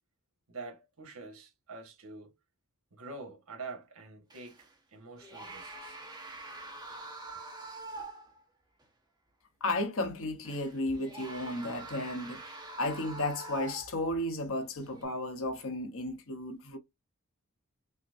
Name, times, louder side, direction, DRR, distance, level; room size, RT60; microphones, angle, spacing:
voice 1, 0.5-2.3 2.9-4.6 4.9-6.0, right 3 dB, 70° right, 1.5 m, -46 dB
sound 1, 4.3-4.7 5.2-8.4 8.8-8.9 10.4-14.1 14.8-15.0, right 2 dB, 20° right, 1.1 m, -45 dB
voice 2, 9.6-12.4 12.7-16.8, left 1 dB, 65° left, 1.1 m, -33 dB
5.6 x 2.2 x 2.6 m
head